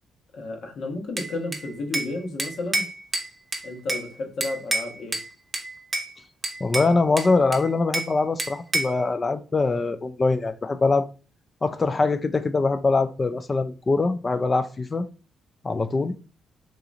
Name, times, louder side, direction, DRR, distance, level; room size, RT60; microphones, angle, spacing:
voice 1, 0.3-2.9 3.6-5.2, left 2 dB, 65° left, 1.1 m, -32 dB
Bell / Glass, 1.2-2.1 2.4-4.1 4.4-5.3 5.5-6.1 6.4-8.1 8.4-9.0, right 2 dB, 25° right, 0.8 m, -29 dB
voice 2, 6.6-11.1 11.6-15.1 15.6-16.1, left 3 dB, 30° left, 0.3 m, -23 dB
3.8 x 2.9 x 2.4 m
cardioid pair, 90°, 0 cm